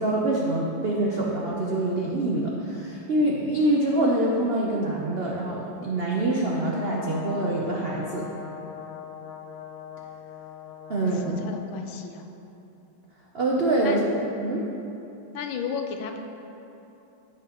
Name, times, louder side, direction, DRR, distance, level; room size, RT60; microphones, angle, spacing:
voice 1, 0.0-8.3 10.9-11.4 13.3-14.6, right 1 dB, 85° right, -3 dB, 0.5 m, -25 dB
Brass instrument, 6.5-11.6, left 8 dB, 60° left, 1.4 m, -40 dB
voice 2, 11.1-12.2 13.8-14.0 15.3-16.2, left 6 dB, 80° left, 4 dB, 1.5 m, -33 dB
15.5 x 5.9 x 3.0 m, 2.9 s
omnidirectional pair, 2.2 m